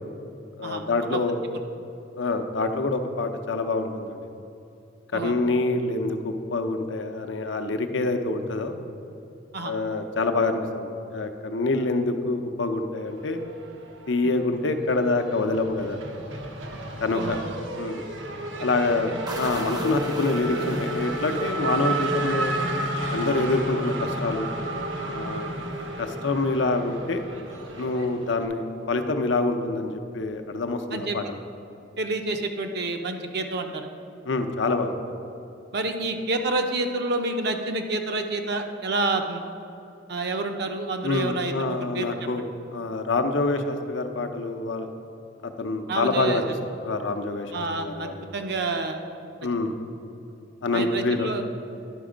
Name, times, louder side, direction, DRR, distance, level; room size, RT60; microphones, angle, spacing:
voice 1, 0.6-1.4 2.2-4.3 5.1-8.8 9.6-13.4 14.1-16.0 17.0-17.4 17.8-18.0 18.6-22.6 23.1-24.5 25.1-25.5 26.0-27.2 27.8-31.4 34.3-35.0 41.0-42.4 42.7-44.9 45.4-46.4 46.8-48.3 49.4-49.7 50.6-51.3, left 3 dB, 75° left, 6 dB, 0.6 m, -26 dB
Race car auto racing / Accelerating revving vroom, 13.4-14.5 14.8-28.5, right 2 dB, 80° right, 1.0 m, -32 dB
sound 1, 19.3-23.8, right 1 dB, 20° right, 0.6 m, -40 dB
voice 2, 32.0-33.9 35.7-39.4 40.1-42.1 45.9-46.4 47.5-49.0 50.7-51.4, right 2 dB, 60° right, 5 dB, 0.7 m, -28 dB
11.0 x 5.2 x 5.0 m, 2.8 s
head